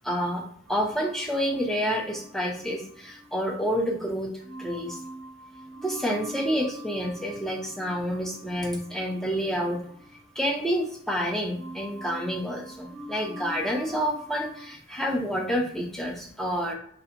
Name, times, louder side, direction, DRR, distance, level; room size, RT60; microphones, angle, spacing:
voice 1, 0.0-0.4 0.7-4.3 4.6-5.0 5.8-9.8 10.4-16.7, equal, ahead, -1 dB, 0.4 m, -28 dB
sound 1, 0.7-3.9 4.4-11.2 11.5-14.7, right 1 dB, 60° right, 0.5 m, -45 dB
2.6 x 2.4 x 2.5 m, 0.64 s
head